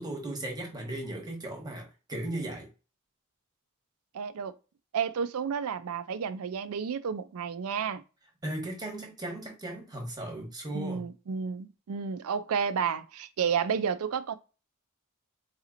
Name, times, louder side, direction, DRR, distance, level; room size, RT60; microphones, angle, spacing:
voice 1, 0.0-2.7 8.4-11.1, right 1 dB, 20° right, 1.0 m, -37 dB
voice 2, 4.1-4.6 4.9-8.0 10.7-14.4, right 6 dB, 90° right, 0.4 m, -31 dB
4.0 x 2.9 x 2.5 m
head